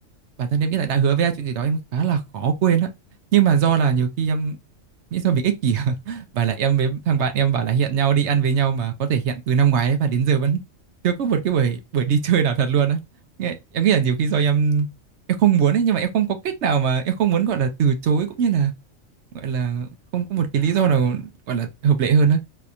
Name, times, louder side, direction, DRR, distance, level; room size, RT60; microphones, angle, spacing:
voice 1, 0.4-2.9 3.3-4.6 5.1-10.6 11.0-13.0 13.4-14.9 15.4-18.7 19.3-22.4, right 7 dB, 65° right, 0.8 m, -21 dB
4.1 x 2.8 x 2.4 m
omnidirectional pair, 1.4 m